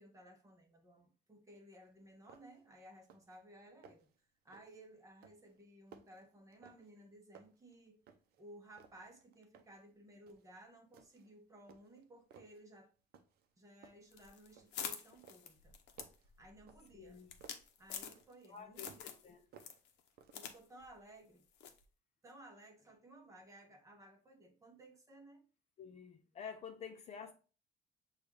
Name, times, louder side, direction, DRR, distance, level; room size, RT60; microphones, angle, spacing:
voice 1, 0.0-4.1 4.4-8.0 8.4-12.9 13.6-15.8 16.4-17.2 17.8-19.0 20.3-21.4 22.2-25.5, right 1 dB, 15° right, 0.8 m, -58 dB
sound 1, 1.8-1.9 2.3-2.7 3.0-3.4 3.7-4.2 4.5-4.8 5.2-7.1 7.3-8.4 8.7-9.9 10.3-10.5 10.9-11.3 11.7-12.6 13.1-13.5 13.8-14.9 15.2-17.7 18.1-19.2 19.5-20.6, right 7 dB, 60° right, 0.6 m, -62 dB
sound 2, 14.1-18.5 18.8-19.3 19.6-20.6 20.8-20.9 21.6-21.8, left 8 dB, 70° left, 0.7 m, -46 dB
voice 2, 16.9-17.3 18.5-19.4 25.8-27.3, left 7 dB, 35° left, 0.5 m, -49 dB
6.6 x 2.4 x 3.2 m
cardioid pair, 155°, 18 cm